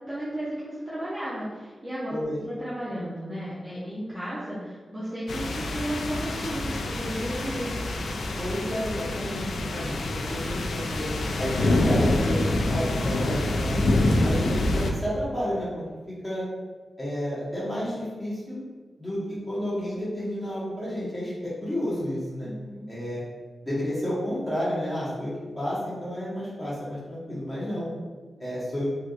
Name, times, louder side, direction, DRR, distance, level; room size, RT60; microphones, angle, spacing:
voice 1, 0.1-7.7 22.4-22.9, right 1 dB, 15° right, -10 dB, 0.6 m, -34 dB
sound 1, 5.3-14.9, left 2 dB, 90° left, 0.3 m, -26 dB
voice 2, 8.4-11.1 11.4-15.7 16.2-16.4 17.0-18.6 19.0-22.5 22.9-23.2 23.6-27.9 28.4-28.9, equal, 5° left, -11 dB, 1.4 m, -31 dB
3.4 x 2.7 x 2.5 m, 1.4 s
wide cardioid pair, 150°, 0 cm